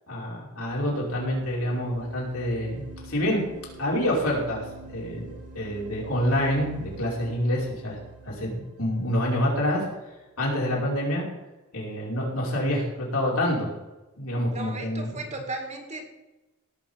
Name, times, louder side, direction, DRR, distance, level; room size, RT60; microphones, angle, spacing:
voice 1, 0.1-3.4 3.8-4.7 4.9-5.3 5.5-8.0 8.2-9.8 10.4-11.2 11.7-13.7 14.2-15.1, equal, 70° left, -3 dB, 5.3 m, -27 dB
sound 1, 0.7-10.5, right 2 dB, 80° right, 5.4 m, -46 dB
voice 2, 14.5-16.0, right 2 dB, 30° right, 4 dB, 2.2 m, -35 dB
18.0 x 7.6 x 5.7 m, 1.1 s
head